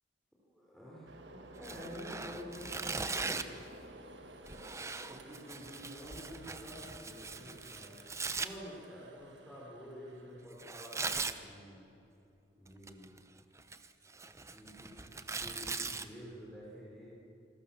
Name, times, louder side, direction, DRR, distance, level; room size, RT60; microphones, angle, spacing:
voice 1, 0.4-3.5 5.1-8.0 8.4-11.9 12.6-13.2 14.4-15.1 15.4-17.1, equal, ahead, -6 dB, 4.5 m, -49 dB
sound 1, 1.1-10.5, right 1 dB, 80° right, 1.7 m, -54 dB
Tearing, 1.6-3.6 4.4-8.5 10.6-11.4 12.7-13.2 13.6-16.0, right 4 dB, 15° right, 0.9 m, -40 dB
27.5 x 21.0 x 7.2 m, 2.9 s
head